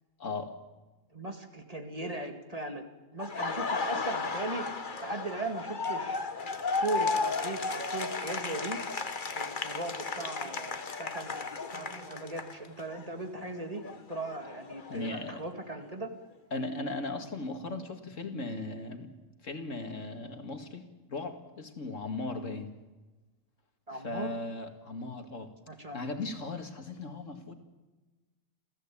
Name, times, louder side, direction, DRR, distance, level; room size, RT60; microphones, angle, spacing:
voice 1, 0.2-0.5 14.9-15.4 16.5-19.1 19.4-20.9 21.1-22.7 23.9-25.5 25.9-27.5, left 2 dB, 65° left, 6 dB, 2.4 m, -37 dB
voice 2, 1.1-2.8 3.1-4.7 5.0-6.2 6.7-8.8 9.3-11.4 11.7-13.8 14.1-16.1 23.9-24.3 25.7-26.0, right 2 dB, 25° right, 5 dB, 2.2 m, -38 dB
Laughter, 3.2-13.0 13.4-15.4, left 4 dB, 40° left, 1.4 m, -34 dB
29.0 x 15.0 x 8.6 m, 1.2 s
omnidirectional pair, 1.4 m